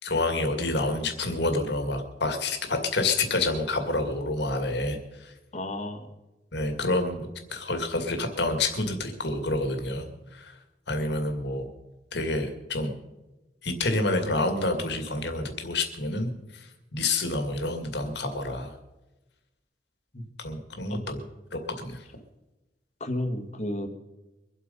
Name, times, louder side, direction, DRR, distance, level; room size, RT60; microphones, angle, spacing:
voice 1, 0.0-5.3 6.5-7.2 7.5-10.1 10.3-10.5 10.9-11.7 12.1-12.9 13.6-18.7 20.4-21.2 21.5-22.0, left 2 dB, 65° left, 6 dB, 2.3 m, -28 dB
voice 2, 5.5-6.1 20.1-20.3 20.9-21.0 23.0-23.9, left 1 dB, 40° left, 6 dB, 1.8 m, -32 dB
24.0 x 8.2 x 5.5 m, 1.0 s
head